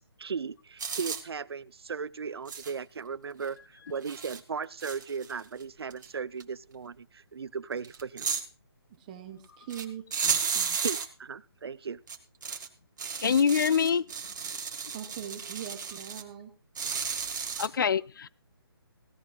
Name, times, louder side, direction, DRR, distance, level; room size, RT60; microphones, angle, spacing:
voice 1, 0.0-3.6 3.9-8.3 10.8-12.0, right 6 dB, 75° right, 21 dB, 0.7 m, -36 dB
sound 1, 0.8-1.2 2.5-2.7 3.4-3.5 4.0-4.4 4.8-5.6 5.9-6.1 6.4-6.5 7.8-8.5 9.7-9.8 10.1-11.1 12.1-12.7 13.0-16.2 16.8-17.7, right 6 dB, 50° right, 2.0 m, -33 dB
voice 2, 9.0-10.8 14.9-16.5, right 9 dB, 20° right, 7 dB, 1.1 m, -42 dB
voice 3, 13.2-14.0 17.6-18.3, left 7 dB, 55° left, 21 dB, 0.6 m, -25 dB
17.5 x 16.5 x 2.4 m, 0.31 s
hypercardioid pair, 170°, 13 cm